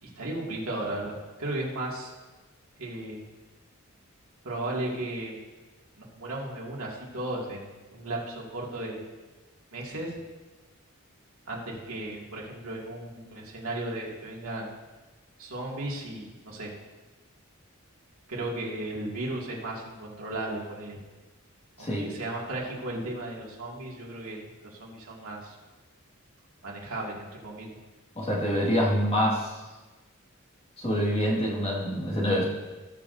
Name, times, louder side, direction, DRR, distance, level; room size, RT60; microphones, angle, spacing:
voice 1, 0.0-2.1 2.8-3.3 4.4-5.4 6.0-9.0 9.7-10.2 11.5-14.7 15.4-16.7 18.3-21.0 21.8-25.5 26.6-27.8, right 1 dB, 75° right, -3 dB, 2.3 m, -35 dB
voice 2, 21.8-22.1 28.2-29.5 30.8-32.4, equal, 25° left, -4 dB, 1.9 m, -26 dB
18.0 x 6.6 x 2.7 m, 1.2 s
head